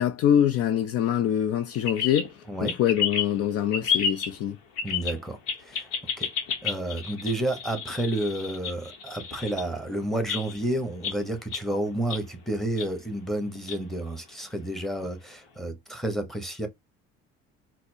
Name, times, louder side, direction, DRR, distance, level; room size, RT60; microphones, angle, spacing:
voice 1, 0.0-2.3 2.6-4.6, left 10 dB, 55° left, 0.4 m, -24 dB
sound 1, 1.8-2.3 2.6-3.4 3.7-4.4 4.8-5.2 5.5-9.6 10.3-10.7 11.0-11.2 11.5-12.2 12.8-12.9 13.5-13.8 15.0-15.1, left 7 dB, 80° left, 0.9 m, -31 dB
voice 2, 4.8-6.3 6.6-16.7, right 1 dB, ahead, 1.0 m, -30 dB
4.1 x 2.1 x 2.7 m
hypercardioid pair, 65°, 30 cm